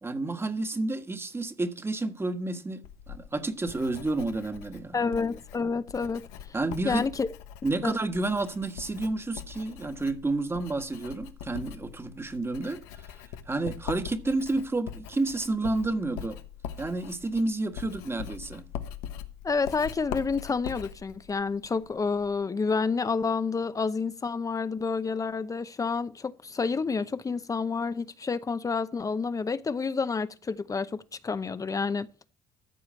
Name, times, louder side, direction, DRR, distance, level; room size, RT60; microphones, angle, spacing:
voice 1, 0.0-2.8 3.1-5.0 6.5-7.1 7.6-12.8 13.5-16.4 16.8-18.6, right 2 dB, 20° right, 1.6 m, -30 dB
Writing, 2.8-22.4, left 9 dB, 90° left, 1.1 m, -42 dB
voice 2, 4.9-6.2 6.8-7.3 7.8-8.0 19.4-32.1, left 4 dB, 30° left, 0.8 m, -29 dB
14.0 x 4.9 x 7.4 m
supercardioid pair, 70°, 12 cm